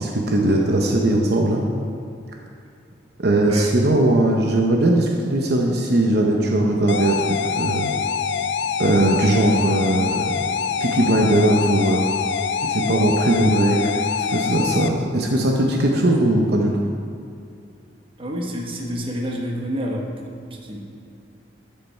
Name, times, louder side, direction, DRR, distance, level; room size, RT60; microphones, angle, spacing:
voice 1, 0.0-1.6 3.2-7.2 7.6-7.9 8.8-10.3 10.8-12.1 12.6-13.8 14.2-16.7, right 1 dB, 65° right, 0 dB, 0.8 m, -19 dB
sound 1, 6.9-14.9, left 6 dB, 75° left, 0.4 m, -25 dB
voice 2, 18.2-20.8, equal, 30° right, -1 dB, 1.2 m, -28 dB
13.5 x 5.5 x 4.4 m, 2.5 s
head